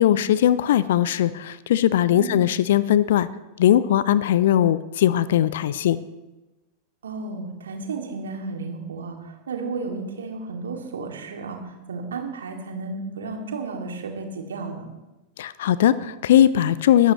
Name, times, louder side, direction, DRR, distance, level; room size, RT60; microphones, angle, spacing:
voice 1, 0.0-3.3 3.6-6.0 15.4-17.1, left 11 dB, 60° left, 17 dB, 0.6 m, -19 dB
voice 2, 7.0-14.9, right 4 dB, 65° right, 2 dB, 2.5 m, -33 dB
22.0 x 15.0 x 3.2 m, 1.1 s
figure-of-eight pair, 90°, 0 cm